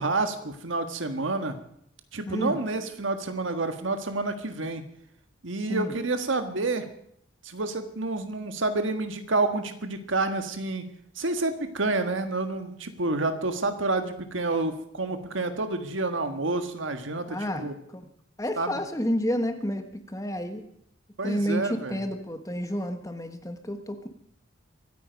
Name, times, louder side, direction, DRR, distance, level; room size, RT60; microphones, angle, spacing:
voice 1, 0.0-1.6 2.1-4.8 5.4-6.9 7.4-17.7 18.6-18.8 21.2-22.0, right 2 dB, 75° right, 8 dB, 1.6 m, -29 dB
voice 2, 2.3-2.6 5.7-5.9 17.3-18.1 18.4-20.6 21.2-24.1, equal, 15° left, 7 dB, 1.3 m, -30 dB
24.5 x 9.2 x 5.2 m, 0.69 s
head